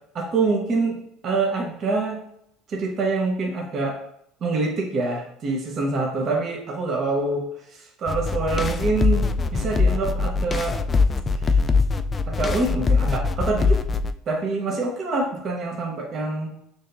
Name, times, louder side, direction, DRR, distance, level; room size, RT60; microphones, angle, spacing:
voice 1, 0.1-2.2 2.7-4.0 4.4-9.2 9.5-10.8 11.5-11.6 12.3-13.8 14.3-16.5, right 3 dB, 45° right, 0 dB, 1.0 m, -25 dB
sound 1, 8.1-14.1, left 4 dB, 30° left, 0.3 m, -22 dB
6.4 x 2.7 x 2.6 m, 0.74 s
supercardioid pair, 95°, 0 cm